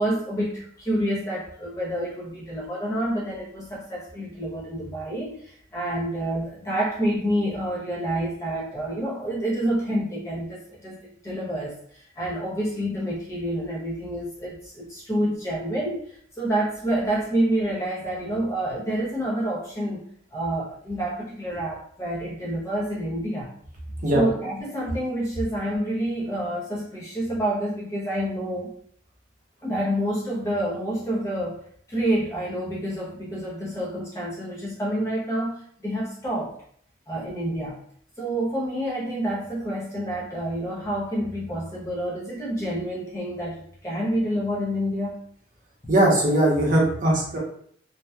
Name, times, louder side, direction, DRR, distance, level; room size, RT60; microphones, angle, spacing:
voice 1, 0.0-16.0 16.4-20.0 20.3-23.5 24.1-28.8 29.6-31.6 31.9-35.6 35.8-36.5 37.1-37.8 38.2-45.2, right 1 dB, 15° left, -5 dB, 0.5 m, -28 dB
voice 2, 45.9-47.4, right 1 dB, 40° right, -4 dB, 0.8 m, -20 dB
2.7 x 2.1 x 2.2 m, 0.62 s
head